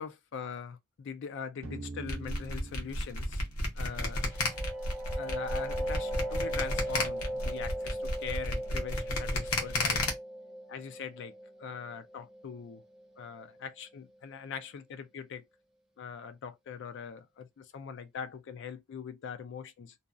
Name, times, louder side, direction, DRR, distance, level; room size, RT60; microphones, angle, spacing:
voice 1, 0.0-3.4 3.8-4.3 5.2-10.1 10.7-12.8 13.2-15.4 16.0-20.0, left 6 dB, 55° left, 0.3 m, -42 dB
sound 1, 1.6-4.6, right 2 dB, 60° right, 0.6 m, -45 dB
sound 2, 2.1-10.1, left 2 dB, 75° left, 0.9 m, -32 dB
sound 3, 3.9-13.4, right 1 dB, 5° right, 0.5 m, -38 dB
2.6 x 2.3 x 2.4 m
head